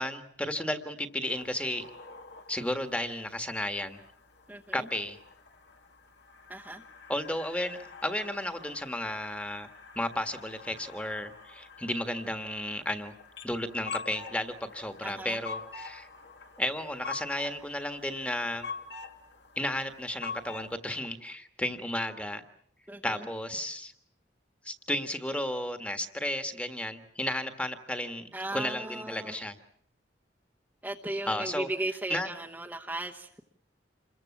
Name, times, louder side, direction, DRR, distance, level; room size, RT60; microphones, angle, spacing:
voice 1, 0.0-1.9 2.5-4.0 4.7-5.2 7.1-9.7 9.9-13.1 13.4-16.1 16.6-18.7 19.6-22.4 23.0-23.9 24.6-29.6 31.3-31.7 32.1-32.3, left 1 dB, 5° left, 7 dB, 1.6 m, -33 dB
sound 1, 1.3-20.7, left 5 dB, 70° left, 2.2 m, -46 dB
voice 2, 4.5-4.8 6.5-6.8 15.0-15.4 22.9-23.0 28.3-29.3 30.8-33.3, right 1 dB, 10° right, -2 dB, 1.1 m, -36 dB
28.0 x 22.0 x 7.3 m, 0.66 s
head